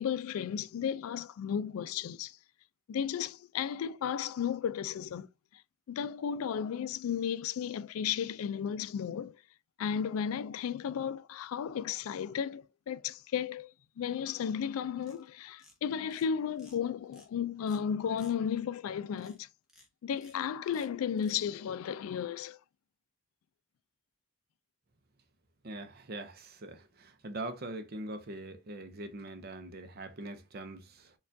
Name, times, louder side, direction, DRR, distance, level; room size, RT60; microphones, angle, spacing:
voice 1, 0.0-2.4 2.9-5.6 5.9-9.4 9.8-19.5 20.0-22.6, left 8 dB, 80° left, 0.3 m, -34 dB
sound 1, 15.0-15.3 15.6-15.8 16.1-16.3 16.6-16.8 17.1-17.3 17.7-17.8 18.1-18.3 19.2-19.4 19.7-19.9 20.1-20.3 20.7-20.9 21.2-21.4, left 1 dB, 5° right, 0.8 m, -58 dB
voice 2, 25.6-31.1, right 2 dB, 45° right, 0.5 m, -42 dB
4.4 x 2.3 x 2.6 m
head